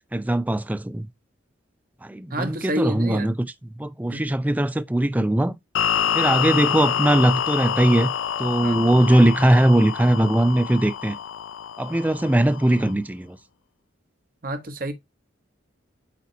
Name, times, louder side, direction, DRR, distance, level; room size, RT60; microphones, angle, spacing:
voice 1, 0.1-1.1 2.0-3.3 3.8-5.5 6.1-8.1 8.4-11.2 11.8-13.4, right 1 dB, 10° right, 0.4 m, -20 dB
voice 2, 2.3-3.3 4.1-4.3 8.6-8.8 14.4-14.9, right 1 dB, 45° right, 1.2 m, -29 dB
sound 1, 5.7-12.9, left 9 dB, 90° left, 0.4 m, -27 dB
8.4 x 2.9 x 4.0 m
head